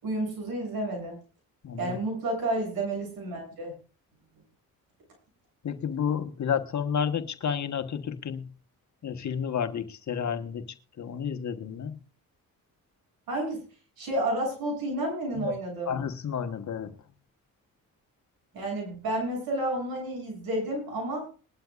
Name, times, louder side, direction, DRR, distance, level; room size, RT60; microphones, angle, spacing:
voice 1, 0.0-1.2 1.8-3.7 13.3-13.6 14.0-16.0 18.5-21.3, right 1 dB, 80° right, 1 dB, 7.6 m, -31 dB
voice 2, 1.6-2.0 5.6-8.5 9.0-10.6 11.0-12.0 15.4-15.5 15.9-16.9, left 7 dB, 50° left, 8 dB, 1.4 m, -31 dB
21.0 x 11.5 x 2.5 m, 0.37 s
supercardioid pair, 65°, 35 cm